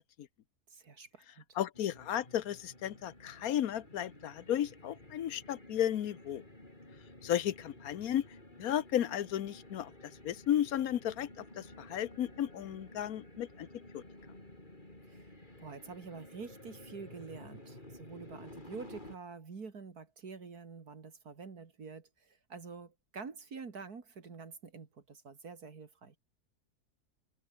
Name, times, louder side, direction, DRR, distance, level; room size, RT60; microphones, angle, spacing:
voice 1, 0.7-1.6 15.0-15.3 15.6-26.2, right 5 dB, 70° right, 2.8 m, -47 dB
voice 2, 1.6-6.4 7.2-8.2 8.6-13.7 13.9-14.0, left 11 dB, 70° left, 1.3 m, -34 dB
sound 1, 1.7-19.2, left 1 dB, 30° left, 5.7 m, -53 dB
omnidirectional pair, 1.7 m